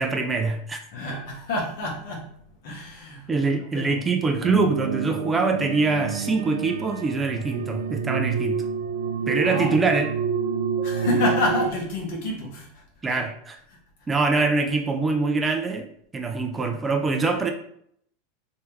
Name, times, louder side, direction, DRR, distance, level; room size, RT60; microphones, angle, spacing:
voice 1, 0.0-0.8 3.3-8.6 9.3-10.1 13.0-13.6 14.1-15.9 16.1-17.5, right 3 dB, 20° right, 4 dB, 0.6 m, -24 dB
voice 2, 0.9-2.3 2.6-4.0 9.2-9.7 10.8-13.2 14.1-14.2, left 2 dB, 65° left, -1 dB, 1.4 m, -29 dB
sound 1, 4.4-11.7, right 6 dB, 85° right, 0.4 m, -28 dB
3.3 x 3.3 x 3.1 m, 0.68 s
hypercardioid pair, 95°, 0 cm